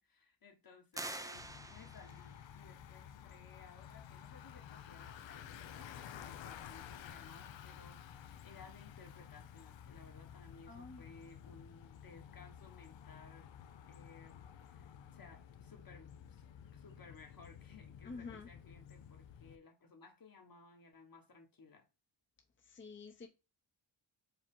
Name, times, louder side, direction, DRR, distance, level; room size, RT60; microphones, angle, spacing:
voice 1, 0.0-13.5 13.9-16.5 16.7-21.9, left 4 dB, 50° left, 1.2 m, -59 dB
sound 1, 0.9-2.3, right 2 dB, 10° right, 0.3 m, -46 dB
Bicycle, 1.3-19.6, left 9 dB, 85° left, 0.6 m, -53 dB
voice 2, 10.7-11.0 18.0-18.5 22.6-23.3, left 4 dB, 25° left, 0.6 m, -48 dB
5.0 x 2.9 x 3.6 m
wide cardioid pair, 120°, 44 cm